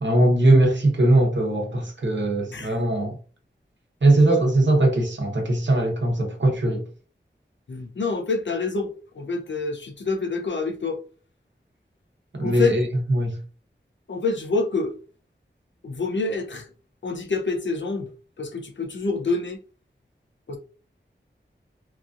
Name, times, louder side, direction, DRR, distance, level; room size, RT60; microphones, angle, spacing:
voice 1, 0.0-3.2 4.0-6.8 12.4-13.4, right 2 dB, 70° right, 0.9 m, -20 dB
voice 2, 7.7-11.0 12.4-12.7 14.1-14.9 15.8-16.7 17.0-18.1 18.4-19.6 20.5-20.6, left 4 dB, 70° left, 0.6 m, -27 dB
3.0 x 2.4 x 2.5 m
wide cardioid pair, 45°, 20 cm